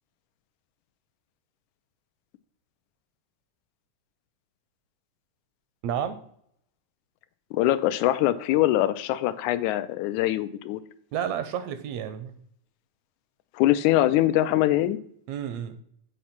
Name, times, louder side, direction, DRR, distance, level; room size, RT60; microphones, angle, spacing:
voice 1, 5.8-6.2 11.1-12.3 15.3-15.8, right 9 dB, 80° right, 9 dB, 1.7 m, -31 dB
voice 2, 7.5-10.8 13.5-15.0, left 14 dB, 85° left, 12 dB, 2.0 m, -23 dB
8.2 x 3.1 x 5.8 m, 0.66 s
omnidirectional pair, 3.4 m